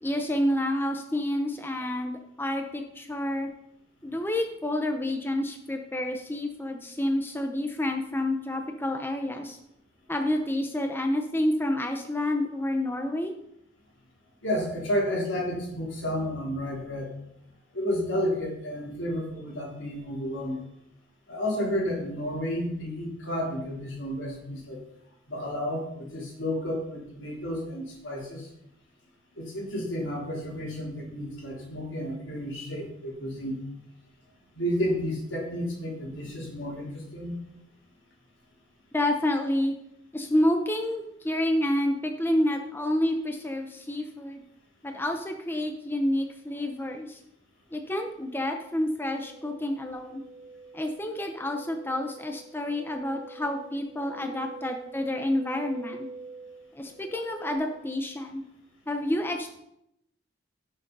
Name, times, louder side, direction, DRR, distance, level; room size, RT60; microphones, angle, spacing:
voice 1, 0.0-3.5 4.0-9.6 10.1-13.3 38.9-39.7 40.1-44.4 44.8-47.2 47.7-50.2 50.7-56.1 56.7-58.4 58.9-59.6, left 1 dB, 10° left, 4 dB, 0.7 m, -29 dB
voice 2, 14.4-17.1 17.7-20.6 21.3-24.8 25.3-28.5 29.4-33.7 34.5-37.4, equal, 75° left, -2 dB, 3.6 m, -31 dB
sound 1, 49.0-57.5, right 3 dB, 45° left, 3.9 m, -46 dB
16.5 x 6.6 x 4.0 m, 0.82 s
head